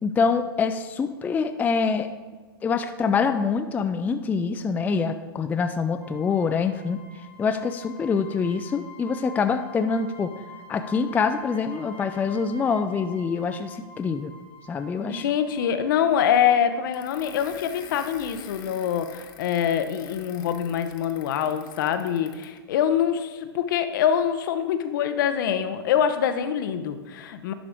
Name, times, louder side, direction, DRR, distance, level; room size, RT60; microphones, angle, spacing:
voice 1, 0.0-2.1 2.6-7.0 7.4-10.3 10.7-14.3 14.7-15.2, left 5 dB, 15° left, 8 dB, 0.3 m, -25 dB
sound 1, 6.0-17.4, left 3 dB, 50° right, 1.4 m, -47 dB
voice 2, 15.1-27.5, left 9 dB, 60° left, 10 dB, 0.7 m, -24 dB
sound 2, 16.9-22.6, left 7 dB, 35° left, 1.0 m, -46 dB
11.0 x 4.9 x 3.6 m, 1.4 s
hypercardioid pair, 110°, 12 cm